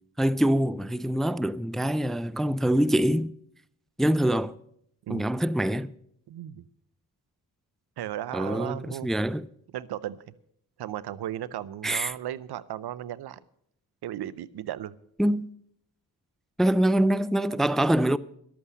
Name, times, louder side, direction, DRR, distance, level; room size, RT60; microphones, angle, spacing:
voice 1, 0.2-3.3 4.0-4.5 5.1-5.9 8.3-9.5 11.8-12.1 15.2-15.5 16.6-18.2, right 1 dB, ahead, 0.4 m, -24 dB
voice 2, 6.3-6.6 8.0-9.1 9.7-10.2 10.8-13.4 14.0-15.0, right 12 dB, 80° right, 0.7 m, -35 dB
12.5 x 8.6 x 6.9 m
cardioid pair, 60°, 38 cm